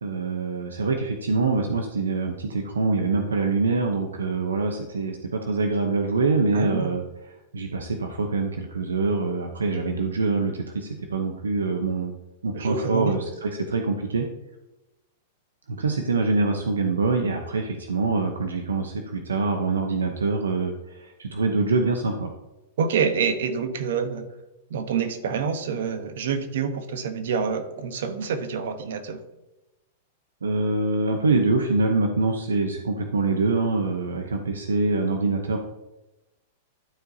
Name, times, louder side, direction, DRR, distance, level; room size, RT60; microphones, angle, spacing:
voice 1, 0.0-7.0 7.5-12.1 12.4-14.3 15.7-22.3 30.4-35.6, right 3 dB, 90° right, 4 dB, 0.7 m, -25 dB
voice 2, 6.5-7.0 12.5-13.2 22.8-24.3 24.7-29.2, right 6 dB, 70° right, 9 dB, 1.0 m, -27 dB
12.5 x 4.7 x 2.7 m, 0.98 s
hypercardioid pair, 110°, 0 cm